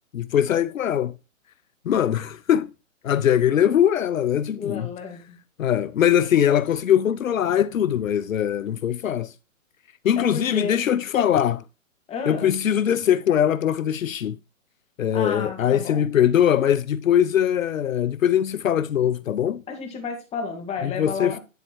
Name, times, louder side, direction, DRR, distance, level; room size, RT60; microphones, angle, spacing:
voice 1, 0.1-1.2 1.9-2.7 3.0-4.9 5.6-9.3 10.0-11.6 12.3-14.4 15.0-19.6 20.8-21.4, left 10 dB, 80° left, 0.7 m, -21 dB
voice 2, 4.5-5.4 10.2-10.8 12.1-12.6 15.1-16.0 19.7-21.4, left 5 dB, 15° left, 2.3 m, -31 dB
10.5 x 4.2 x 4.6 m
hypercardioid pair, 140°, 40 cm